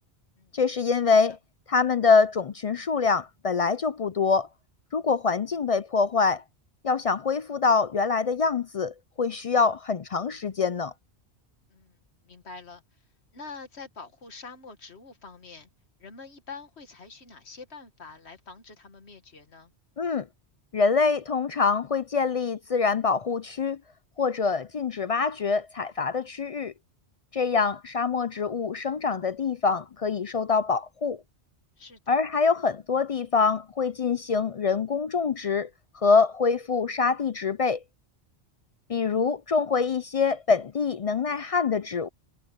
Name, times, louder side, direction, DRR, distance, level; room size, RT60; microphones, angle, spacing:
voice 1, 0.5-1.4 1.7-4.5 4.9-6.4 6.8-10.9 20.0-20.3 20.7-23.8 24.2-26.7 27.3-31.2 32.1-35.7 36.0-37.8 38.9-42.1, left 5 dB, 55° left, 0.4 m, -25 dB
voice 2, 11.7-13.1 13.3-15.7 16.0-19.7 31.8-32.2, left 4 dB, 70° left, 2.1 m, -45 dB
omnidirectional pair, 1.1 m